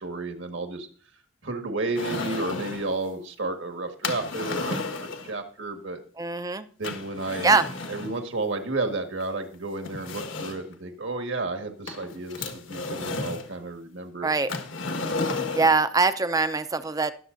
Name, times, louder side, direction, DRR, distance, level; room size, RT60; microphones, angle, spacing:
voice 1, 0.0-0.9 1.4-6.0 6.8-7.5 7.9-14.3, right 2 dB, 65° right, 6 dB, 1.7 m, -32 dB
sound 1, 1.9-2.9 4.0-5.3 6.8-8.2 9.2-9.3 9.8-10.7 11.9-13.5 14.5-15.8, left 3 dB, 70° left, 1.4 m, -32 dB
voice 2, 6.2-6.7 7.4-7.7 14.2-14.5 15.6-17.1, right 4 dB, 20° right, 12 dB, 0.5 m, -22 dB
21.0 x 7.2 x 2.6 m, 0.44 s
head